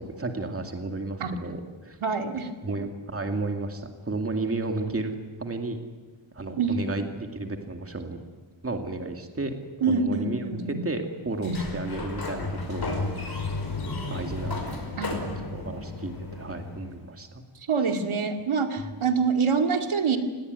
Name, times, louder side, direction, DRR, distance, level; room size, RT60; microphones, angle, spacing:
voice 1, 0.0-2.0 2.6-5.8 6.3-8.2 8.6-9.6 9.9-13.5 14.1-17.4 18.8-18.9, right 2 dB, 25° right, 5 dB, 2.3 m, -33 dB
voice 2, 2.0-2.5 6.6-6.7 9.8-10.8 11.4-11.6 15.0-15.1 17.7-20.2, right 5 dB, 75° right, 5 dB, 2.4 m, -25 dB
Sliding door, 11.3-17.0, left 3 dB, 50° left, 5.2 m, -33 dB
29.0 x 19.5 x 9.6 m, 1.4 s
wide cardioid pair, 175°, 49 cm